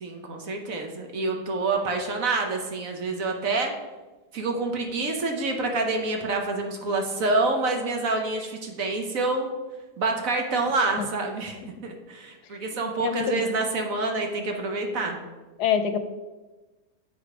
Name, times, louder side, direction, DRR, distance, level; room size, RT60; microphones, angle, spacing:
voice 1, 0.0-3.7 4.3-9.5 10.0-15.2, right 3 dB, 60° right, 3 dB, 1.2 m, -27 dB
voice 2, 12.7-13.6 15.6-16.0, left 8 dB, 75° left, 9 dB, 1.1 m, -27 dB
8.1 x 5.0 x 4.9 m, 1.2 s
omnidirectional pair, 1.8 m